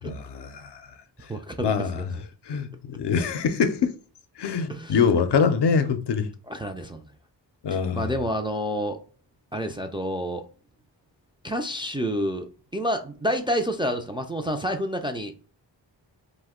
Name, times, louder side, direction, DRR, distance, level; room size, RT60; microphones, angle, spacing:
voice 1, 0.0-0.9 1.6-2.2 2.5-3.9 4.4-6.3 7.6-8.1, left 6 dB, 65° left, 0.6 m, -24 dB
voice 2, 1.3-2.0 4.7-5.0 6.5-7.0 7.7-9.0 9.5-10.5 11.4-15.5, equal, 10° right, 0.3 m, -29 dB
2.6 x 2.2 x 3.5 m
cardioid pair, 55°, 45 cm